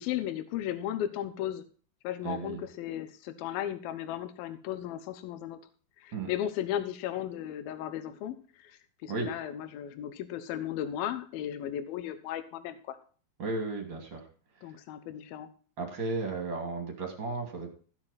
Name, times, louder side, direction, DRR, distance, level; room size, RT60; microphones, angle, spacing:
voice 1, 0.0-1.6 2.0-5.6 6.0-13.0 14.6-15.5, left 11 dB, 70° left, 11 dB, 2.6 m, -35 dB
voice 2, 2.2-2.6 6.1-6.3 9.1-9.3 13.4-14.2 15.8-17.7, right 3 dB, 30° right, 3 dB, 2.8 m, -34 dB
14.5 x 7.1 x 4.2 m, 0.40 s
omnidirectional pair, 4.9 m